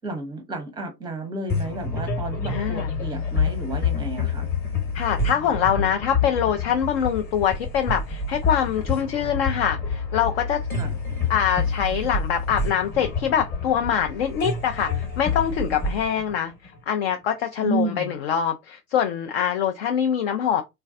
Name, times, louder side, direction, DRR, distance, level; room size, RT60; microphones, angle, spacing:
voice 1, 0.0-4.5 10.8-11.0 17.6-18.1, right 3 dB, 10° right, 0.7 m, -31 dB
sound 1, 1.5-17.1, left 4 dB, 20° left, 1.1 m, -28 dB
voice 2, 2.5-2.9 4.9-10.6 11.3-20.6, left 9 dB, 40° left, 0.4 m, -24 dB
3.3 x 2.3 x 2.5 m
figure-of-eight pair, 95°, 49 cm